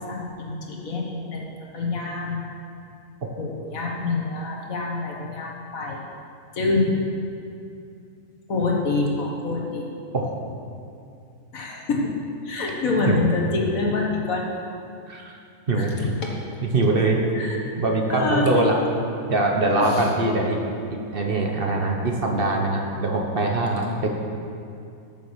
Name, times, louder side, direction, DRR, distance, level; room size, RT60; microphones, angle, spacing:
voice 1, 0.0-1.5 1.7-2.4 3.4-6.0 6.6-7.0 8.5-9.9 11.5-12.1 12.4-14.5 15.8-16.4 17.3-17.6 18.1-18.6 19.7-20.1, left 3 dB, 60° left, -1 dB, 2.0 m, -26 dB
voice 2, 15.1-15.4 15.7-15.9 16.6-17.2 17.8-18.8 19.3-20.6 20.9-24.1, right 2 dB, 40° right, 1 dB, 1.3 m, -22 dB
13.0 x 7.1 x 6.3 m, 2.5 s
omnidirectional pair, 1.6 m